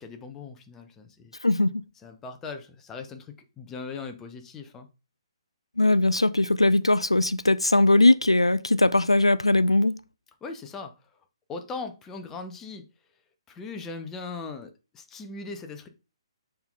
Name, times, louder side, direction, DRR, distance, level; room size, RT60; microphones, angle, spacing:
voice 1, 0.0-1.3 2.0-4.9 10.4-10.9 11.5-12.8 13.5-15.9, left 4 dB, 15° left, 0.8 m, -39 dB
voice 2, 1.4-1.8 5.8-9.9, left 2 dB, 90° left, 0.3 m, -20 dB
6.9 x 3.8 x 3.8 m
figure-of-eight pair, 130°, 3 cm